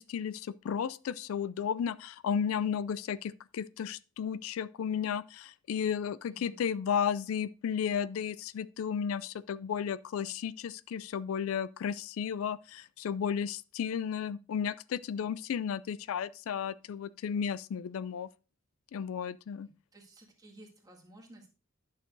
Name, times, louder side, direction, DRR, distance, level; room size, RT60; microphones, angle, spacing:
voice 1, 0.0-18.3 18.9-19.7, left 7 dB, 75° left, 0.3 m, -33 dB
voice 2, 6.3-6.6 19.6-21.5, right 1 dB, 20° right, 1.9 m, -54 dB
11.0 x 6.6 x 2.6 m
head